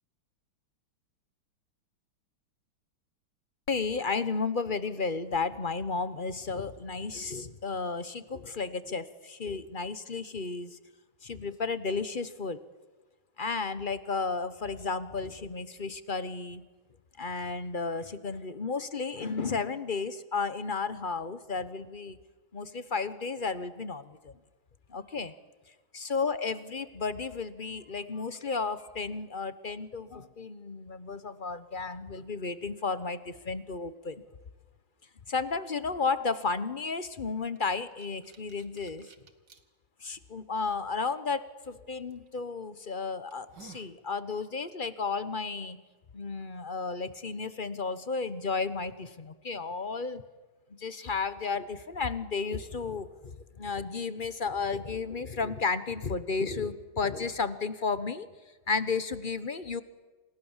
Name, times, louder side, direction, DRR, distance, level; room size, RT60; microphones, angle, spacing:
voice 1, 3.7-10.8 11.2-12.6 13.4-16.6 17.2-22.2 22.5-24.3 24.9-25.3 25.9-34.2 35.3-39.1 40.0-45.8 46.1-50.2 50.7-58.3 58.7-59.8, left 4 dB, 40° left, 13 dB, 0.7 m, -33 dB
sound 1, 37.6-39.6 40.3-40.4 42.1-42.3 42.8-42.9 43.3-44.0, right 5 dB, 55° right, 2.3 m, -54 dB
28.5 x 28.5 x 7.3 m, 1.2 s
omnidirectional pair, 2.4 m